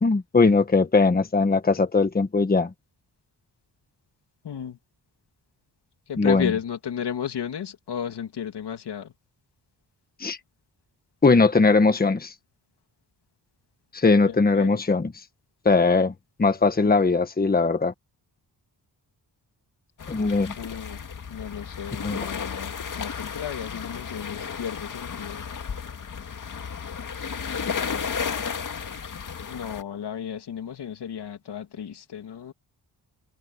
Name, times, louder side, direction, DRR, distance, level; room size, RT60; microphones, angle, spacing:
voice 1, 0.0-2.7 6.2-6.5 10.2-10.4 11.2-12.3 13.9-15.1 15.6-16.1 16.4-17.9 20.1-20.5 22.0-22.2, left 3 dB, 20° left, 1.4 m, -20 dB
voice 2, 4.4-4.8 6.1-9.1 14.2-14.8 16.8-16.9 20.6-21.0 21.3-25.5 29.5-32.5, left 8 dB, 80° left, 2.8 m, -33 dB
sound 1, 20.0-29.8, left 6 dB, 50° left, 1.9 m, -33 dB
open air
wide cardioid pair, 140°, 40 cm